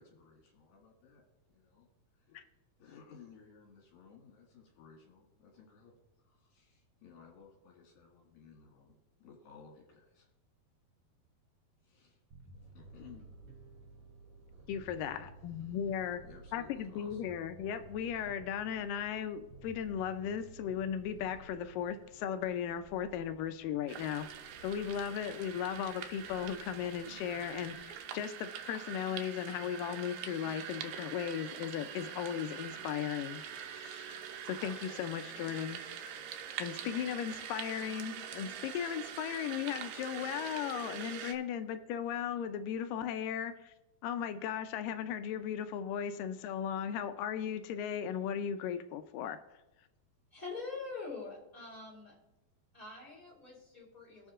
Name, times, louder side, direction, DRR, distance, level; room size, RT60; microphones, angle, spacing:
voice 1, 0.0-1.9 2.1-2.4 2.8-10.3 11.8-12.2 12.6-13.3 15.7-15.8 16.2-17.2 37.1-37.5, left 6 dB, 70° left, -1 dB, 3.4 m, -58 dB
Bass guitar, 12.3-21.9, right 3 dB, 50° right, 3.4 m, -55 dB
Purr, 12.5-27.9, right 2 dB, 20° right, 2.7 m, -60 dB
voice 2, 14.7-16.2 16.5-24.3 24.6-33.4 33.7-34.1 34.5-35.8 36.6-43.7 44.0-49.4, left 9 dB, 90° left, 9 dB, 1.9 m, -37 dB
sound 1, 23.9-41.3, right 8 dB, 90° right, 1.7 m, -44 dB
voice 3, 50.3-52.2 52.7-54.3, left 4 dB, 10° left, -3 dB, 3.3 m, -44 dB
21.0 x 7.3 x 2.4 m, 1.0 s
omnidirectional pair, 4.5 m